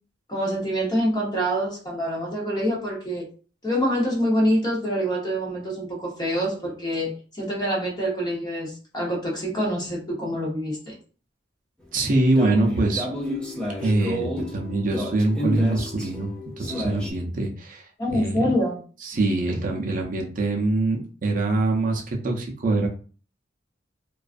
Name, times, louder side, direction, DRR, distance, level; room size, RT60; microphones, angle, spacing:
voice 1, 0.3-3.3 3.6-11.0 18.0-18.8, equal, 25° left, -3 dB, 0.9 m, -26 dB
voice 2, 11.9-13.0 13.8-16.3 16.6-18.6 19.0-22.9, right 2 dB, 50° right, 1 dB, 0.5 m, -24 dB
sound 1, 12.1-17.1, equal, 5° left, 0.5 m, -31 dB
2.3 x 2.3 x 2.4 m, 0.39 s
head